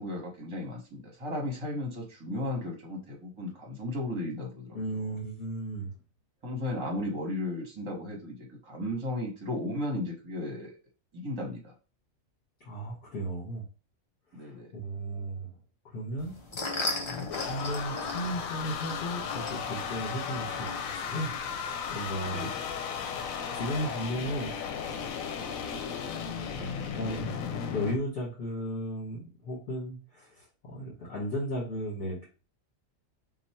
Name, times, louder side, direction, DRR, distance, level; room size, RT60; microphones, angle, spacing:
voice 1, 0.0-5.2 6.4-10.7 11.1-11.7 14.3-14.7 22.3-22.6, left 1 dB, 25° right, 0 dB, 0.9 m, -35 dB
voice 2, 4.7-5.9 12.6-13.6 14.3-15.5 15.8-16.3 17.4-22.5 23.5-24.5 24.8-25.4 26.6-27.4 27.7-32.2, equal, 60° left, -5 dB, 1.5 m, -35 dB
sound 1, 16.2-21.4, left 2 dB, 35° left, 0.5 m, -37 dB
sound 2, 16.7-28.0, left 7 dB, 85° left, 1.0 m, -35 dB
3.1 x 2.3 x 4.1 m, 0.33 s
omnidirectional pair, 1.4 m